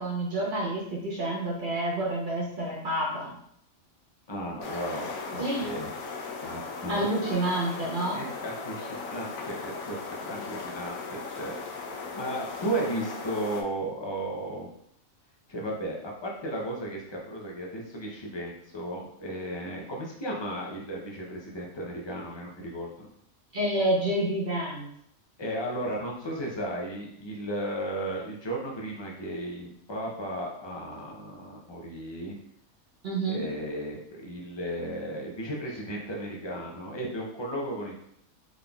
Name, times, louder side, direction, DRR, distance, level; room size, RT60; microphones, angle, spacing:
voice 1, 0.0-3.4 5.4-5.7 6.9-8.2 23.5-24.9 33.0-33.4, right 1 dB, 45° right, -3 dB, 0.9 m, -28 dB
voice 2, 4.3-5.9 6.4-7.3 7.8-7.9 8.1-10.0 10.2-11.8 12.2-14.7 15.5-22.9 25.4-32.4 33.3-38.0, right 1 dB, 40° left, -2 dB, 0.4 m, -35 dB
sound 1, 4.6-13.6, left 4 dB, 80° left, 1.0 m, -38 dB
3.9 x 3.6 x 2.3 m, 0.72 s
omnidirectional pair, 1.4 m